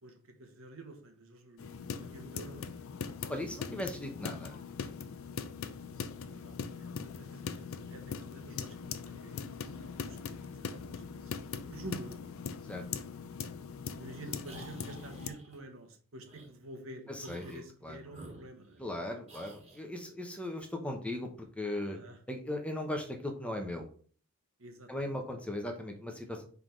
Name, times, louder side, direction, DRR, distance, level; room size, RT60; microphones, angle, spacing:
voice 1, 0.0-2.8 6.1-11.2 11.5-12.2 14.0-18.8 21.8-22.2 24.6-25.2, right 1 dB, 65° right, 5 dB, 1.3 m, -49 dB
sound 1, 1.6-15.3, left 5 dB, 65° left, 0.5 m, -41 dB
voice 2, 3.3-4.6 12.7-12.8 17.1-18.0 18.8-21.3 21.6-22.0 22.3-23.9 24.9-26.5, left 1 dB, 5° left, 3 dB, 0.8 m, -38 dB
sound 2, 14.4-15.6 16.2-16.5 17.2-17.7 18.1-18.9 19.3-19.9, right 1 dB, 30° right, 1.8 m, -52 dB
4.7 x 4.0 x 5.2 m, 0.44 s
head